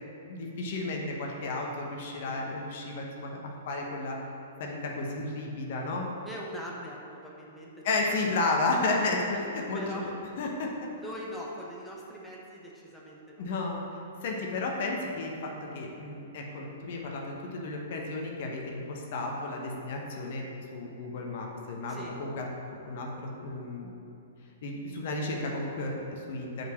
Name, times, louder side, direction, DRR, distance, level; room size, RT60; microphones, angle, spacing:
voice 1, 0.3-3.4 3.7-4.2 4.6-6.1 7.8-10.1 10.4-10.7 13.4-13.8 14.2-20.5 20.7-22.5 22.8-23.1 23.4-23.9 24.6-26.7, left 2 dB, 55° left, 0 dB, 1.0 m, -32 dB
voice 2, 6.2-8.3 9.7-10.1 11.0-13.5 21.9-22.1, equal, 5° left, -4 dB, 1.1 m, -42 dB
5.5 x 4.5 x 6.1 m, 2.9 s
hypercardioid pair, 115°, 0 cm